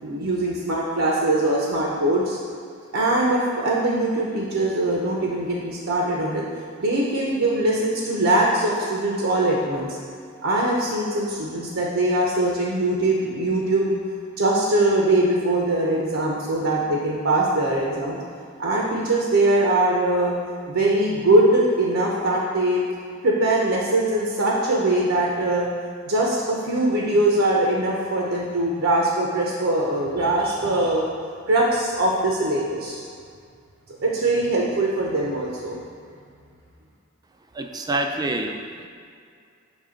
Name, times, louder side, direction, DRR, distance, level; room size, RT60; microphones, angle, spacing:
voice 1, 0.0-2.4 2.9-6.4 6.8-10.0 10.4-14.0 14.4-18.2 18.6-20.3 20.7-22.8 23.2-25.7 26.0-31.1 31.5-33.0 34.0-35.8, right 1 dB, 70° right, -3 dB, 0.8 m, -22 dB
voice 2, 37.5-38.9, right 2 dB, 20° right, 4 dB, 0.4 m, -27 dB
7.2 x 3.3 x 5.0 m, 2.2 s
head